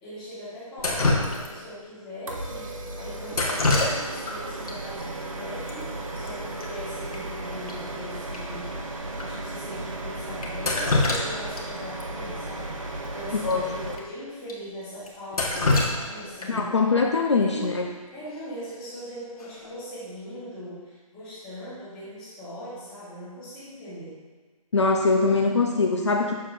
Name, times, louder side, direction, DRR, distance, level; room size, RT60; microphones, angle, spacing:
voice 1, 0.0-5.9 6.1-8.7 9.2-16.8 17.3-17.8 18.1-24.2, equal, 5° left, -13 dB, 1.1 m, -40 dB
Drip, 0.8-1.8 3.3-4.3 4.6-4.7 5.7-5.8 6.0-6.3 6.6-6.7 7.1-7.2 7.7-7.8 8.3-8.4 9.1-9.3 10.4-11.6 12.0-12.1 13.4-13.5 13.9-14.0 14.5-14.6 15.1-16.7 18.7-19.0 19.4-19.8, left 2 dB, 85° left, 1.6 m, -25 dB
sound 1, 2.3-13.9, right 2 dB, 65° right, 1.0 m, -35 dB
voice 2, 13.4-13.9 16.5-17.9 24.7-26.4, left 4 dB, 50° left, 1 dB, 0.7 m, -23 dB
7.4 x 7.3 x 2.5 m, 1.4 s
hypercardioid pair, 180°, 19 cm